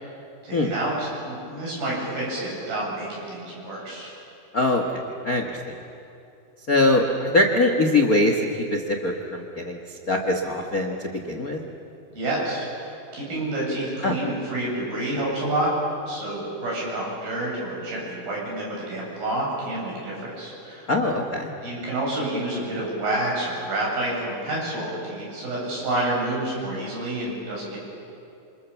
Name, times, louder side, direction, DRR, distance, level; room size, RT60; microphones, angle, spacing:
voice 1, 0.4-4.1 12.1-15.7 16.1-20.9 21.6-27.8, right 1 dB, 75° right, -4 dB, 10.0 m, -29 dB
voice 2, 6.7-9.8 10.1-10.9 11.3-11.6 14.0-14.1 20.9-21.5, left 2 dB, 55° left, 3 dB, 0.9 m, -22 dB
28.0 x 27.5 x 7.2 m, 2.7 s
omnidirectional pair, 4.3 m